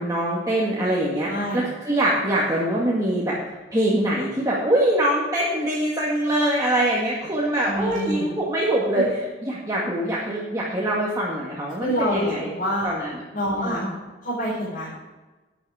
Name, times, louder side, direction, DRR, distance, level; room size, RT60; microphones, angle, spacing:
voice 1, 0.0-3.4 3.7-9.1 9.4-12.5 12.8-13.2 13.5-13.9, right 1 dB, 20° right, -6 dB, 1.9 m, -23 dB
voice 2, 1.3-1.6 7.6-8.2 8.9-9.1 11.8-12.9 13.3-13.8 14.2-14.9, equal, 50° left, -8 dB, 4.6 m, -26 dB
12.0 x 10.0 x 4.9 m, 1.2 s
head